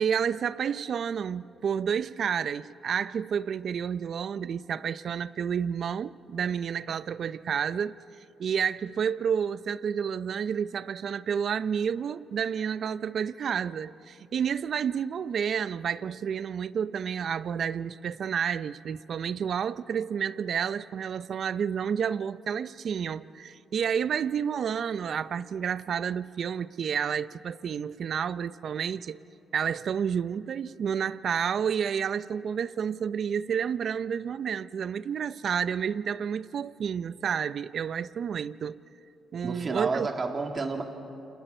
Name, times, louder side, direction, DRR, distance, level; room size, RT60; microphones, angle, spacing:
voice 1, 0.0-8.0 8.4-29.2 29.5-38.8 39.3-40.1, right 7 dB, 55° right, 0.6 m, -30 dB
voice 2, 39.4-40.8, right 3 dB, 40° right, 2.7 m, -30 dB
29.5 x 28.0 x 4.4 m
cardioid pair, 90°, 0 cm